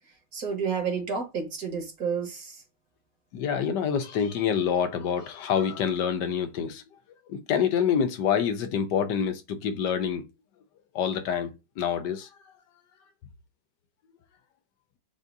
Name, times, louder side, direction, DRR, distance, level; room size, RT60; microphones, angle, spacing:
voice 1, 0.3-2.6, right 6 dB, 55° right, 1.7 m, -30 dB
voice 2, 3.3-6.8 7.3-10.3 10.9-12.3, left 7 dB, 75° left, 1.3 m, -27 dB
7.1 x 2.6 x 2.6 m
omnidirectional pair, 1.9 m